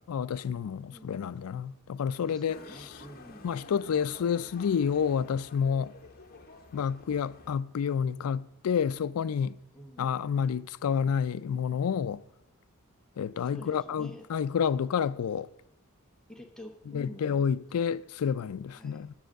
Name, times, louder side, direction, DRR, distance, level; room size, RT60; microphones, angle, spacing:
voice 1, 0.1-2.9 3.4-5.9 6.7-9.6 10.0-12.2 13.2-15.5 16.9-19.1, left 7 dB, 75° left, 0.4 m, -29 dB
voice 2, 0.8-1.3 2.3-3.5 9.7-10.1 13.4-14.2 16.3-17.5 18.8-19.1, equal, 5° left, 0.9 m, -48 dB
Motorcycle, 2.5-7.6, left 3 dB, 45° left, 1.1 m, -50 dB
10.5 x 7.3 x 6.4 m
head